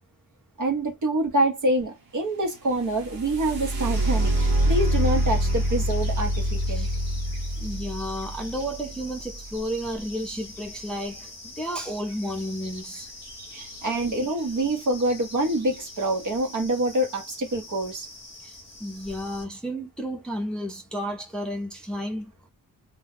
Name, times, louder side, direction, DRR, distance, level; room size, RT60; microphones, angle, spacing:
voice 1, 0.6-6.9 13.5-18.1, right 1 dB, 60° right, 1.0 m, -26 dB
sound 1, 2.8-10.6 12.7-12.8 13.2-13.8 14.4-14.5 15.0-15.3, equal, 90° right, 0.9 m, -26 dB
sound 2, 3.9-19.4, left 2 dB, 15° left, 1.0 m, -44 dB
voice 2, 7.6-13.1 18.4-18.5 18.8-22.5, equal, ahead, 0.6 m, -32 dB
2.3 x 2.2 x 3.4 m
wide cardioid pair, 165°, 35 cm